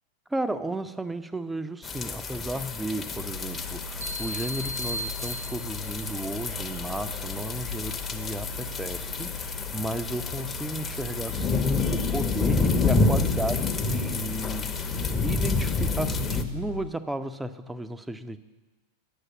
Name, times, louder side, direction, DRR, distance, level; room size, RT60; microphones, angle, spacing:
voice 1, 0.3-18.4, right 1 dB, 5° right, 11 dB, 0.5 m, -34 dB
sound 1, 1.8-16.4, left 3 dB, 20° left, 0.8 m, -29 dB
sound 2, 3.2-16.9, left 4 dB, 80° left, 0.3 m, -38 dB
sound 3, 4.0-5.9, equal, 70° right, 1.1 m, -36 dB
9.0 x 6.4 x 8.6 m, 1.2 s
figure-of-eight pair, 90°, 0 cm